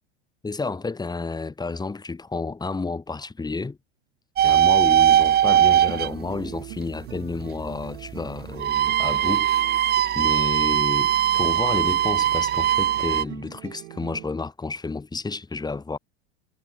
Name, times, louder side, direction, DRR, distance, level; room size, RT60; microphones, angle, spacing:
voice 1, 0.4-3.8 4.4-9.5 10.2-16.0, left 3 dB, 10° left, 2.0 m, -30 dB
sound 1, 4.4-6.1 8.5-13.2, right 11 dB, 30° right, 0.9 m, -20 dB
sound 2, 5.4-14.3, right 18 dB, 75° right, 1.7 m, -43 dB
hypercardioid pair, 95°, 33 cm